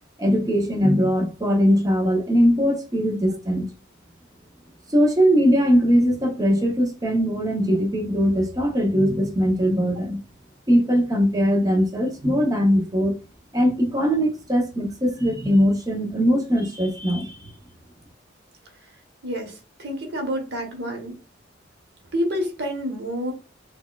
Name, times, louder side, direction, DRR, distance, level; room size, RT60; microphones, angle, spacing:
voice 1, 0.2-3.7 4.9-10.2 10.7-13.2 13.5-17.5, equal, 20° right, 0.6 m, -20 dB
voice 2, 19.2-21.2 22.1-23.3, equal, 55° right, 1.0 m, -28 dB
4.1 x 2.2 x 2.2 m
head